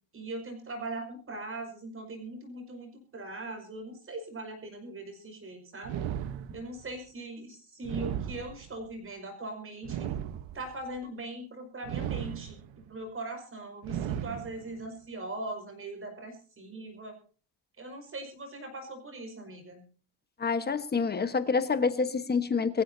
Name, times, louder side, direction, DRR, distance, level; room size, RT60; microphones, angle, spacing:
voice 1, 0.1-6.0 6.5-10.1 10.5-17.1 17.8-19.8, right 2 dB, 30° right, 4 dB, 5.8 m, -40 dB
sound 1, 5.8-6.9 7.8-8.9 9.8-10.9 11.8-12.9 13.8-14.9, right 10 dB, 80° right, 1.3 m, -36 dB
voice 2, 20.4-22.8, left 5 dB, 20° left, 10 dB, 1.3 m, -27 dB
25.0 x 15.0 x 2.8 m, 0.38 s
cardioid pair, 145°, 45 cm